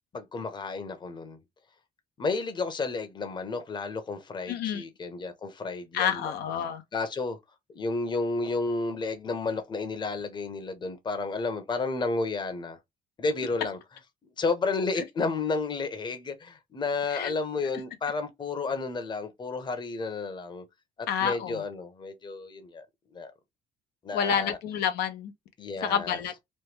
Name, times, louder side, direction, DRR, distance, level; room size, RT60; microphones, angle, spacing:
voice 1, 0.1-1.4 2.2-6.3 6.9-7.4 7.7-12.8 13.2-13.8 14.4-20.6 21.2-22.9 23.1-23.3 24.0-24.6 25.6-26.2, left 3 dB, 25° left, 0.8 m, -31 dB
voice 2, 4.5-4.8 5.9-6.8 17.1-17.3 21.1-21.6 24.1-25.3 25.8-26.3, left 8 dB, 75° left, 0.7 m, -28 dB
3.1 x 2.2 x 3.3 m
cardioid pair, 110°, 17 cm